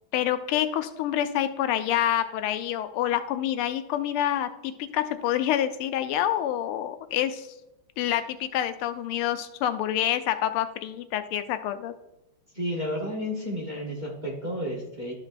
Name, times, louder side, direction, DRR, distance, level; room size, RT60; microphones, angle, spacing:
voice 1, 0.1-7.5 8.0-11.9, left 11 dB, 90° left, 10 dB, 1.5 m, -27 dB
voice 2, 12.5-15.1, equal, 30° right, -2 dB, 1.0 m, -31 dB
12.0 x 5.2 x 2.5 m, 0.93 s
omnidirectional pair, 2.3 m